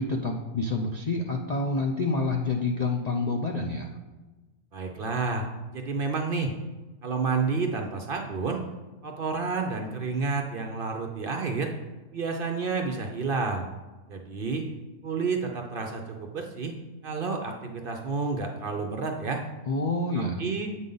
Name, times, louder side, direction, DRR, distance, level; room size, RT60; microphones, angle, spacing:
voice 1, 0.0-3.9 19.7-20.5, left 3 dB, 65° left, 2 dB, 0.4 m, -28 dB
voice 2, 4.7-6.5 7.0-8.6 9.0-11.7 12.1-13.7 14.1-14.6 15.0-16.7 17.0-19.4 20.4-20.7, right 4 dB, 55° right, 3 dB, 0.6 m, -30 dB
8.0 x 5.3 x 3.9 m, 1.2 s
omnidirectional pair, 1.5 m